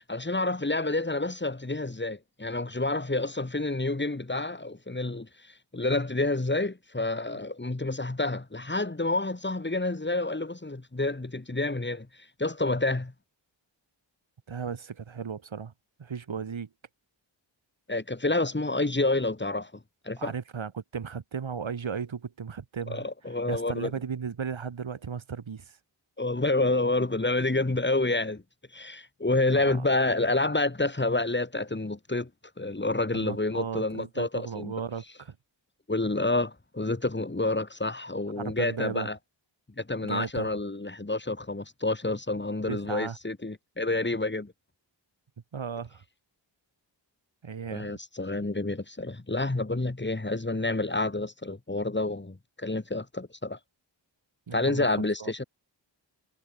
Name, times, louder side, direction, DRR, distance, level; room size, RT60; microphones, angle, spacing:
voice 1, 0.1-13.1 17.9-19.7 20.0-20.3 22.9-23.9 26.2-28.4 28.7-32.3 32.6-34.7 35.9-39.2 39.8-44.5 47.7-53.6 54.5-55.4, left 2 dB, 25° left, 3.7 m, -29 dB
voice 2, 14.5-15.7 16.0-16.7 20.2-23.0 23.5-25.8 29.6-29.9 33.1-35.3 38.4-39.1 40.0-40.5 42.7-43.2 45.5-46.0 47.4-48.0 54.5-54.9 55.2-55.3, right 6 dB, 85° right, 3.3 m, -35 dB
wide cardioid pair, 70°, 45 cm